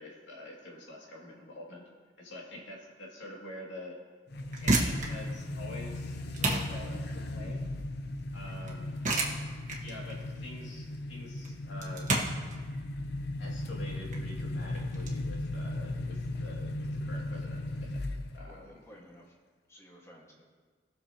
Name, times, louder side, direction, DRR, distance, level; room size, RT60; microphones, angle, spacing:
voice 1, 0.0-1.9 2.2-4.0 4.5-7.7 8.3-8.9 9.8-12.1 13.4-18.1 18.3-18.7, left 1 dB, 85° left, -3 dB, 2.7 m, -46 dB
sound 1, 4.3-18.6, left 1 dB, 65° left, 0.6 m, -37 dB
sound 2, 4.3-15.1, right 2 dB, 45° right, 1.6 m, -33 dB
voice 2, 18.4-19.3 19.7-20.4, equal, 15° left, -2 dB, 1.8 m, -54 dB
20.5 x 7.0 x 3.0 m, 1.5 s
head